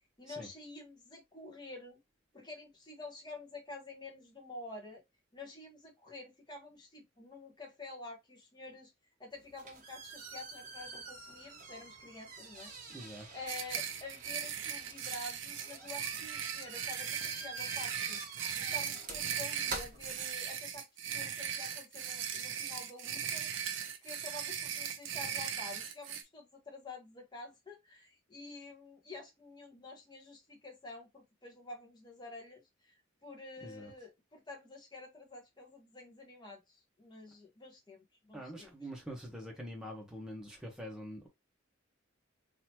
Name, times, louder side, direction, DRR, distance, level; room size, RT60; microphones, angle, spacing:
voice 1, 0.2-2.0 2.3-5.0 5.3-8.9 9.2-23.5 24.0-38.7, left 2 dB, 20° left, 1.4 m, -49 dB
sound 1, 9.3-20.8, right 3 dB, 40° right, 1.1 m, -48 dB
voice 2, 12.9-13.3 33.6-33.9 38.3-41.3, equal, 5° right, 1.3 m, -45 dB
sound 2, 13.5-26.2, right 8 dB, 60° right, 0.6 m, -38 dB
4.0 x 2.9 x 3.0 m
head